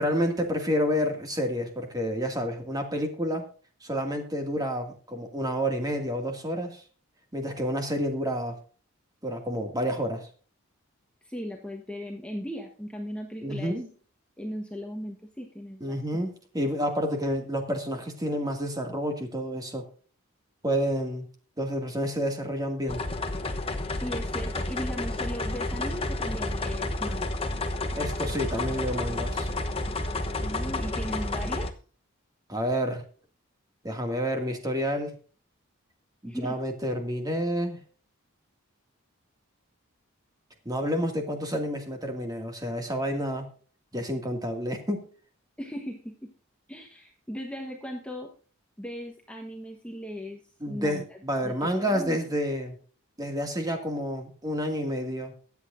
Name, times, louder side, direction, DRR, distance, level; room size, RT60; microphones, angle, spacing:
voice 1, 0.0-3.4 3.8-6.8 7.3-8.6 9.2-10.3 13.4-13.9 15.8-19.8 20.6-21.3 21.6-23.0 28.0-29.5 32.5-33.0 33.8-35.1 36.2-37.8 40.7-43.5 43.9-45.1 50.6-52.8 53.2-55.3, equal, 15° right, 4 dB, 2.2 m, -29 dB
voice 2, 11.2-13.8 14.4-16.0 24.0-27.4 30.4-31.7 36.2-36.6 45.6-46.3 46.7-48.3 48.8-50.4 50.7-51.5 51.8-52.2, equal, 5° left, 1 dB, 1.2 m, -37 dB
sound 1, 22.9-31.7, left 2 dB, 25° left, 1.0 m, -30 dB
22.5 x 8.2 x 2.6 m, 0.40 s
head